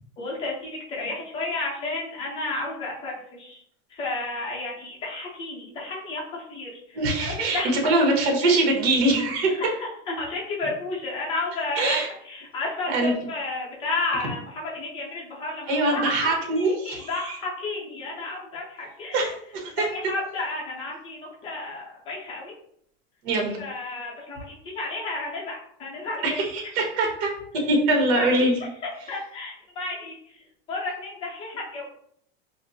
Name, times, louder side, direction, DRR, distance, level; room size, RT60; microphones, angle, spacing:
voice 1, 0.2-3.1 3.4-3.6 3.9-6.7 7.2-7.7 8.4-8.6 9.6-12.0 12.3-19.3 19.8-22.5 23.5-26.4 28.1-28.5 29.1-30.1 30.7-31.8, left 2 dB, 15° left, -4 dB, 0.6 m, -32 dB
voice 2, 6.9-9.5 11.7-12.1 12.9-13.1 15.7-17.4 19.1-19.3 19.6-19.9 23.2-23.6 26.2-27.3 27.6-28.6, right 2 dB, 55° right, 0 dB, 1.2 m, -23 dB
4.1 x 2.1 x 2.7 m, 0.67 s
supercardioid pair, 170°, 31 cm